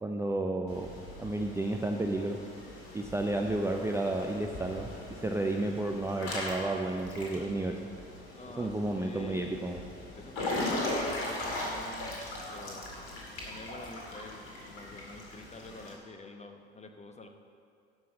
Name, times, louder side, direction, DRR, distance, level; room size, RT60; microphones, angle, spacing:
voice 1, 0.0-0.9 1.2-2.4 2.9-7.8 8.6-9.8, right 2 dB, 10° right, 2 dB, 0.6 m, -32 dB
Water / Splash splatter / Drip, 0.7-15.9, left 1 dB, 60° left, 2.3 m, -39 dB
voice 2, 8.3-9.6 10.2-12.2 12.5-12.8 13.5-17.3, left 2 dB, 20° left, 5 dB, 1.0 m, -47 dB
12.0 x 5.5 x 6.6 m, 2.4 s
figure-of-eight pair, 55°, 34 cm